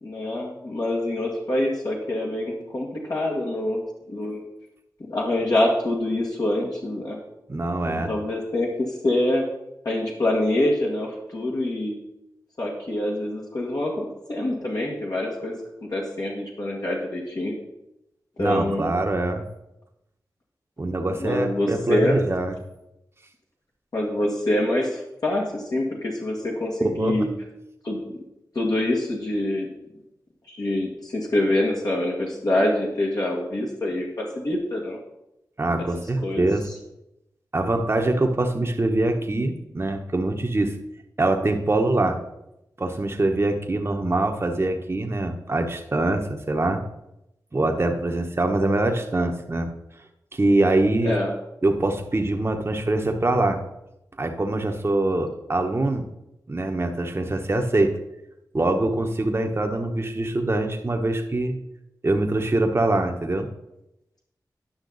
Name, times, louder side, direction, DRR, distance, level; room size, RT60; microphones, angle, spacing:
voice 1, 0.0-3.8 4.1-4.4 5.1-7.2 8.1-9.4 9.8-11.9 12.6-15.5 15.8-17.5 18.4-19.0 21.2-22.2 23.9-27.3 27.8-28.2 28.5-29.7 30.5-35.0 36.2-36.5 51.0-51.3, left 1 dB, 60° left, -3 dB, 1.7 m, -25 dB
voice 2, 7.5-8.1 18.4-19.4 20.8-22.5 26.8-27.2 35.6-36.7 37.5-40.7 41.2-42.2 42.8-46.8 47.5-49.7 50.3-51.1 51.6-53.6 54.2-56.0 56.5-57.9 58.5-61.5 62.0-63.5, right 2 dB, 35° right, 3 dB, 1.0 m, -23 dB
10.5 x 5.7 x 4.0 m, 0.86 s
cardioid pair, 45°, 7 cm